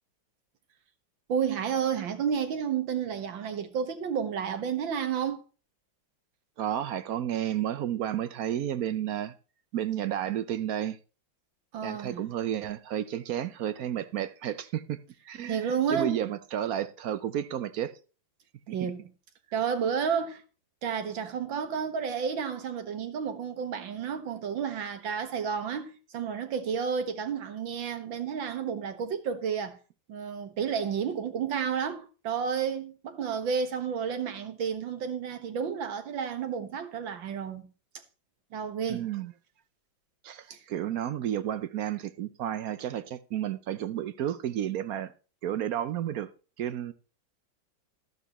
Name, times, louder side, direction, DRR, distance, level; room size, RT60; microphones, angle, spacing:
voice 1, 1.3-5.4 11.7-12.3 15.5-16.2 18.7-19.1 19.5-20.4 20.8-29.8 30.1-37.6 38.5-39.1 40.5-40.6, right 7 dB, 85° right, 2.2 m, -31 dB
voice 2, 6.6-9.3 9.7-11.0 11.8-15.0 15.3-17.9 18.7-18.9 38.9-39.3 40.2-45.1 45.4-46.3 46.6-46.9, right 10 dB, 65° right, 1.0 m, -32 dB
12.5 x 12.0 x 3.0 m
omnidirectional pair, 2.1 m